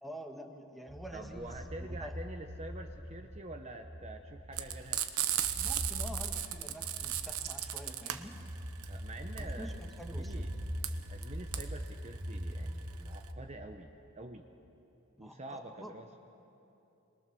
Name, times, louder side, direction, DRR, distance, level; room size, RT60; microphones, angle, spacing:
voice 1, 0.0-2.2 5.6-8.4 9.3-10.3 15.2-16.0, equal, ahead, 3 dB, 1.7 m, -47 dB
sound 1, 0.9-13.7, equal, 50° right, 3.1 m, -42 dB
voice 2, 1.1-5.0 8.8-9.7 10.1-10.5 11.1-14.5 15.2-16.1, right 1 dB, 30° right, 4 dB, 1.0 m, -46 dB
Frying (food), 4.5-13.3, right 11 dB, 75° right, 1.1 m, -36 dB
26.5 x 22.5 x 7.0 m, 2.9 s
head